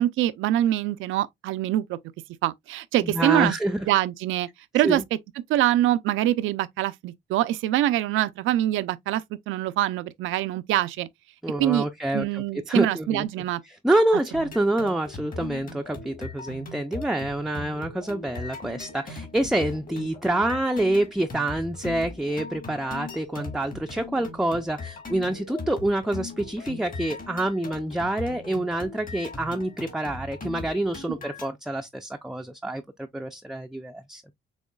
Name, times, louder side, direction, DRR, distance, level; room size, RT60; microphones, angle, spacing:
voice 1, 0.0-2.0 2.4-3.6 3.9-4.5 4.7-5.0 5.5-11.1 11.6-11.9 12.1-13.6, right 13 dB, 85° right, 0.5 m, -24 dB
voice 2, 3.0-3.9 4.8-5.0 11.4-13.3 13.7-34.2, right 1 dB, ahead, 0.4 m, -27 dB
sound 1, 14.3-31.5, left 3 dB, 45° left, 1.6 m, -39 dB
6.3 x 2.9 x 2.3 m
cardioid pair, 90°, 20 cm